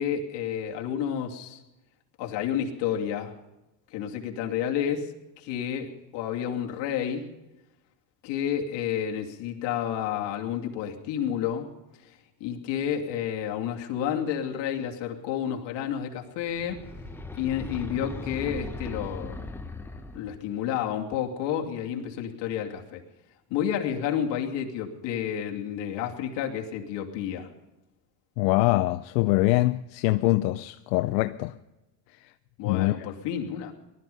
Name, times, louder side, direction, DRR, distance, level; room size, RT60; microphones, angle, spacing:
voice 1, 0.0-1.6 2.2-3.4 3.9-7.3 8.2-11.7 12.0-12.1 12.4-16.8 17.4-19.4 20.1-23.0 23.5-27.5 32.6-33.7, left 9 dB, 55° left, 2.7 m, -30 dB
sound 1, 16.5-20.4, left 2 dB, 5° left, 0.9 m, -38 dB
voice 2, 28.4-31.5 32.6-33.1, left 18 dB, 85° left, 0.7 m, -24 dB
19.5 x 13.0 x 5.5 m
supercardioid pair, 125°, 49 cm